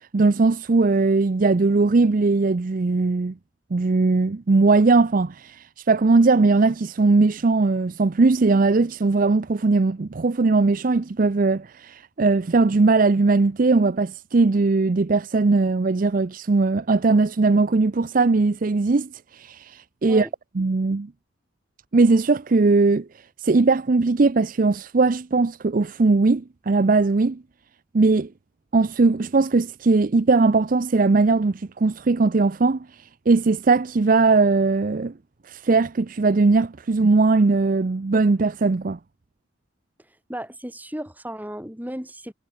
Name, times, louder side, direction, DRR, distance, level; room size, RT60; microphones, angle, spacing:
voice 1, 0.1-3.3 3.7-20.3 20.5-21.1 21.9-23.1 23.4-27.4 27.9-28.3 28.7-32.9 33.3-35.1 35.5-39.0, right 3 dB, 45° right, 0.5 m, -19 dB
voice 2, 40.3-42.3, equal, 10° right, 5.9 m, -34 dB
head